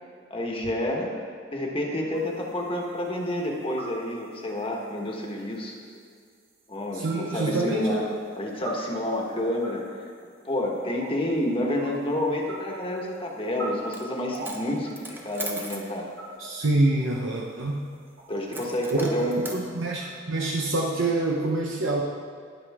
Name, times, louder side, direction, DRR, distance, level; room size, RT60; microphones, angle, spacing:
voice 1, 0.3-1.1 1.5-5.8 6.7-8.1 8.3-10.1 10.4-16.1 18.3-19.4, left 1 dB, 30° left, 0 dB, 1.4 m, -29 dB
sound 1, 2.1-20.2, right 2 dB, 90° right, 3.3 m, -45 dB
voice 2, 6.9-8.1 16.4-17.8 18.9-22.0, right 2 dB, 70° right, -1 dB, 0.9 m, -26 dB
Coin (dropping), 13.8-14.1 14.3-15.9 18.5-19.6, right 2 dB, 10° right, 0.9 m, -38 dB
19.5 x 6.7 x 3.6 m, 2.1 s
head